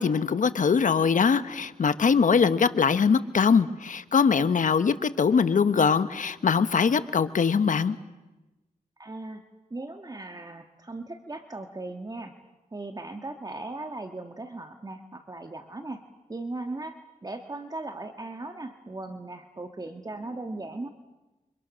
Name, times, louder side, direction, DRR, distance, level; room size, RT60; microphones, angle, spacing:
voice 1, 0.0-8.0, left 6 dB, 70° left, 12 dB, 1.2 m, -22 dB
voice 2, 9.0-9.4 9.7-12.3 12.7-16.0 16.3-20.9, right 2 dB, 30° right, 6 dB, 1.6 m, -38 dB
29.0 x 25.5 x 6.4 m, 1.1 s
cardioid pair, 70°, 14 cm